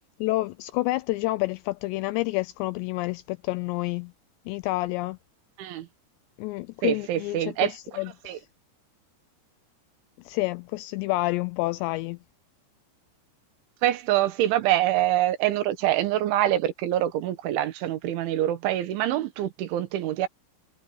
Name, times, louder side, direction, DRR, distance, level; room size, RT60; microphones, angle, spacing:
voice 1, 0.2-4.1 4.5-5.2 6.4-8.4 10.3-12.2, left 20 dB, 85° left, 2.6 m, -29 dB
voice 2, 6.8-7.7 8.3-8.4 13.8-20.3, right 13 dB, 85° right, 3.9 m, -25 dB
omnidirectional pair, 5.3 m